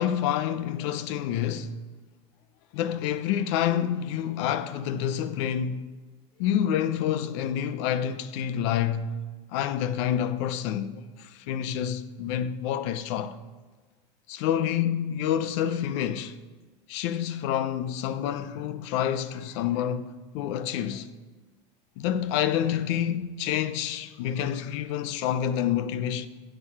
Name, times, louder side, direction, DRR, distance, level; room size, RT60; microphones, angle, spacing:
voice 1, 0.0-1.8 2.7-5.8 6.4-9.1 9.5-13.4 14.3-16.4 16.9-21.1 22.0-26.3, left 10 dB, 70° left, 0.6 m, -28 dB
11.5 x 6.9 x 5.8 m
cardioid pair, 160°, 15 cm